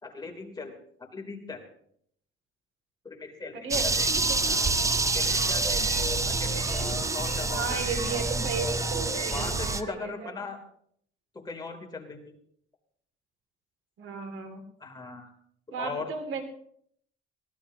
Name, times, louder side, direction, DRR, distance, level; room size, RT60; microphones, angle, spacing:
voice 1, 0.0-0.7 1.1-1.6 3.0-4.1 4.4-4.7 5.1-7.8 8.6-8.8 9.3-10.6 11.3-12.3 14.8-15.3 15.8-16.1, left 4 dB, 20° left, 1 dB, 3.2 m, -39 dB
voice 2, 3.5-3.8 4.1-4.4 7.5-10.3 14.0-14.6 15.7-16.4, right 4 dB, 65° right, 5 dB, 2.5 m, -35 dB
sound 1, 3.7-9.8, right 3 dB, 15° right, 0.7 m, -27 dB
sound 2, 4.0-9.9, right 2 dB, 30° right, 6.4 m, -39 dB
23.0 x 17.0 x 2.9 m, 0.66 s
cardioid pair, 120°, 21 cm